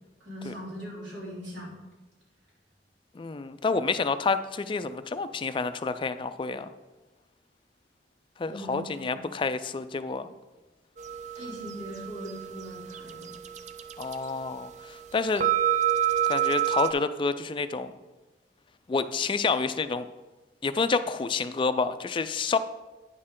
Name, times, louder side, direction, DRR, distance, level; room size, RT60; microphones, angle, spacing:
voice 1, 0.2-1.8 8.5-9.2 11.4-13.3, equal, 85° right, -5 dB, 3.0 m, -40 dB
voice 2, 3.2-6.7 8.4-10.3 14.0-15.5 16.3-17.9 18.9-20.1 20.6-22.6, left 4 dB, 30° left, 11 dB, 0.3 m, -29 dB
sound 1, 11.0-16.9, right 11 dB, 40° right, 0.4 m, -29 dB
9.5 x 6.4 x 3.7 m, 1.2 s
head